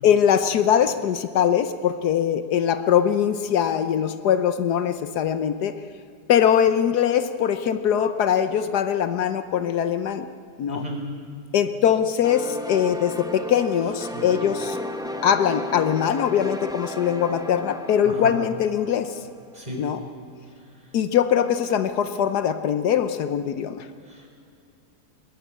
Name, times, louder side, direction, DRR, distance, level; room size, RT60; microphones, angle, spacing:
voice 1, 0.0-5.7 6.3-10.3 10.6-10.8 11.5-14.8 15.2-19.2 19.8-20.0 20.9-23.9, left 9 dB, 75° left, 10 dB, 1.4 m, -22 dB
voice 2, 10.7-11.0 14.1-14.2 18.0-18.3 19.5-19.8 24.0-24.3, equal, 25° right, 0 dB, 4.5 m, -34 dB
sound 1, 12.2-19.7, equal, 5° right, 0.8 m, -35 dB
21.0 x 18.0 x 8.3 m, 2.4 s
omnidirectional pair, 1.7 m